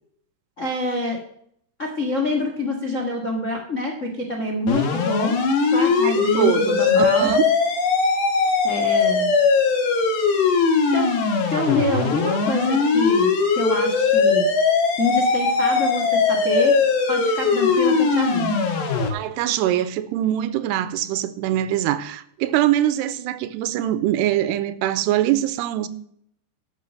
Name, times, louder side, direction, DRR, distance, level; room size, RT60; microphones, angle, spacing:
voice 1, 0.6-1.2 1.8-5.4 5.7-7.3 8.6-9.3 10.9-11.1 11.5-14.5 15.0-16.7 17.1-18.5, left 2 dB, 55° left, 0 dB, 0.8 m, -26 dB
sound 1, 4.7-19.1, left 4 dB, 80° left, 4.2 m, -20 dB
voice 2, 6.0-7.4 19.1-25.9, right 12 dB, 90° right, 14 dB, 2.8 m, -23 dB
12.5 x 6.4 x 6.4 m, 0.67 s
omnidirectional pair, 4.8 m